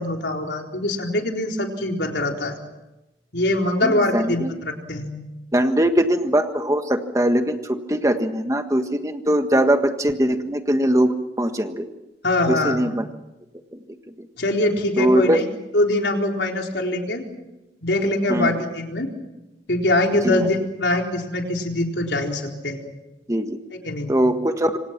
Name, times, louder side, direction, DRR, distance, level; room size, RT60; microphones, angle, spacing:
voice 1, 0.0-2.6 3.3-5.1 12.2-12.8 14.4-15.4 15.7-17.2 17.8-19.1 19.7-22.9 23.7-24.1, left 1 dB, 75° left, 2 dB, 4.1 m, -23 dB
voice 2, 3.8-4.5 5.5-11.9 12.5-13.1 13.7-13.8 14.2-14.3 15.0-15.4 18.3-18.6 20.2-20.5 23.3-23.6 24.1-24.8, right 1 dB, 20° right, 7 dB, 1.5 m, -21 dB
27.0 x 26.0 x 6.0 m, 0.98 s
head